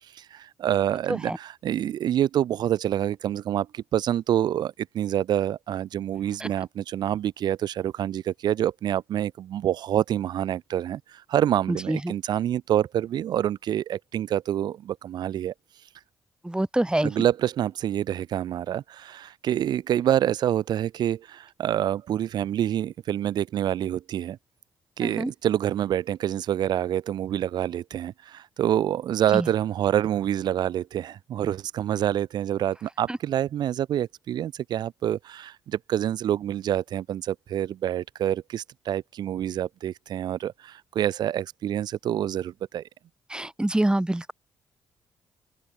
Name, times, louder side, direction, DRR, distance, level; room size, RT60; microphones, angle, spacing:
voice 1, 0.1-15.5 17.0-24.4 25.0-42.8, right 11 dB, 70° right, 5.3 m, -27 dB
voice 2, 11.7-12.1 16.4-17.1 25.0-25.3 29.3-29.5 33.1-33.2 43.3-44.3, right 1 dB, 10° right, 4.7 m, -26 dB
hypercardioid pair, 50°, 8 cm